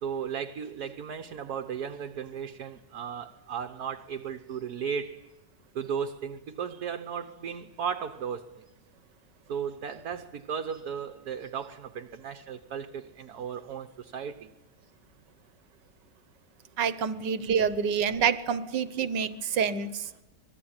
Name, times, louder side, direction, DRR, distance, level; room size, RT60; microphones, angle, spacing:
voice 1, 0.0-5.3 5.7-8.5 9.5-14.5, right 7 dB, 65° right, 7 dB, 1.5 m, -35 dB
voice 2, 16.8-20.2, right 7 dB, 85° right, 13 dB, 1.7 m, -27 dB
25.5 x 20.5 x 8.9 m, 1.0 s
omnidirectional pair, 1.8 m